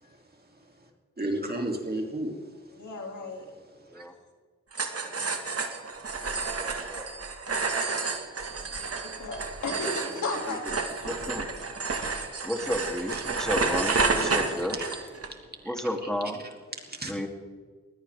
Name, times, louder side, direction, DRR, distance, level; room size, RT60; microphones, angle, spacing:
voice 1, 1.2-2.4 3.9-4.1 13.9-14.3 14.8-14.9 16.9-17.3, right 1 dB, 35° right, 2 dB, 3.3 m, -32 dB
voice 2, 2.7-3.5 9.0-10.8 14.4-14.8, left 3 dB, 85° left, 1 dB, 3.0 m, -35 dB
sound 1, 4.7-15.3, right 4 dB, 55° right, 2.1 m, -30 dB
voice 3, 6.4-7.3 11.0-11.4 12.4-14.8 15.6-16.4 17.0-17.3, equal, ahead, 2 dB, 3.4 m, -32 dB
20.5 x 17.0 x 3.8 m, 1.5 s
cardioid pair, 55°, 29 cm